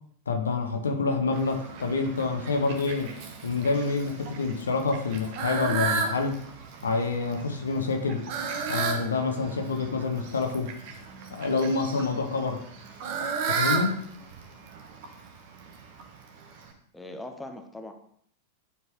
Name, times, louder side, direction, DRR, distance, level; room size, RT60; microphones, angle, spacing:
voice 1, 0.3-3.1 3.4-6.4 6.8-8.2 8.7-10.7 11.3-12.6 13.5-14.0, left 4 dB, 70° left, 5 dB, 0.9 m, -27 dB
Fowl, 1.3-16.7, right 5 dB, 50° right, 1.1 m, -35 dB
voice 2, 16.9-17.9, left 1 dB, 5° left, 4 dB, 0.8 m, -40 dB
9.9 x 4.6 x 3.1 m, 0.63 s
figure-of-eight pair, 90°, 0 cm